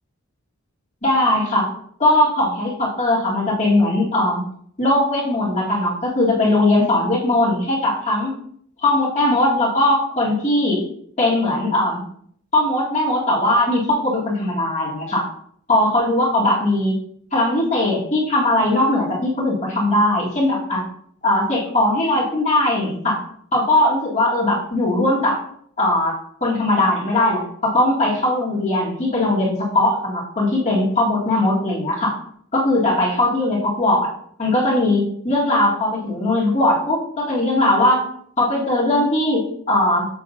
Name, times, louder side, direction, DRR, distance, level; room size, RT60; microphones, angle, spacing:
voice 1, 1.0-1.7 2.0-4.4 4.8-8.3 8.8-10.9 11.2-12.0 12.5-15.2 15.7-17.0 17.3-20.8 21.2-23.2 23.5-25.4 25.8-26.1 26.4-27.4 27.7-32.2 32.5-34.1 34.4-38.0 38.4-40.1, left 1 dB, 35° left, -5 dB, 1.9 m, -19 dB
7.1 x 6.0 x 2.5 m, 0.64 s
head